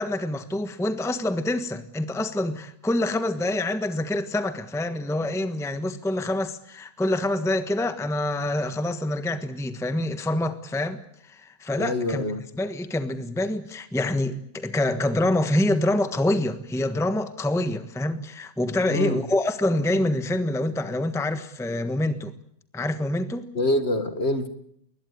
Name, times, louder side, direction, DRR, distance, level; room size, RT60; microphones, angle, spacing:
voice 1, 0.0-12.2 12.6-22.3 22.7-23.5, left 1 dB, ahead, 1.2 m, -26 dB
voice 2, 11.8-12.4 18.9-19.2 23.6-24.5, left 1 dB, 45° left, 2.0 m, -25 dB
21.5 x 20.5 x 9.6 m
omnidirectional pair, 1.6 m